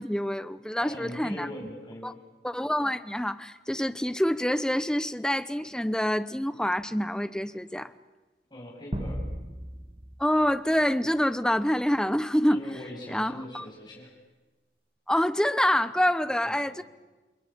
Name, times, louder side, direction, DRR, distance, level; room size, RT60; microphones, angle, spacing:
voice 1, 0.0-1.5 2.0-2.1 2.4-7.9 10.2-12.6 13.1-13.6 15.1-16.8, equal, 5° left, 13 dB, 0.9 m, -26 dB
voice 2, 0.8-2.2 8.5-9.2 12.5-14.1 16.4-16.8, left 1 dB, 25° left, -2 dB, 7.8 m, -41 dB
sound 1, 8.9-11.5, equal, 30° right, 2.5 m, -37 dB
29.0 x 21.5 x 8.8 m, 1.2 s
head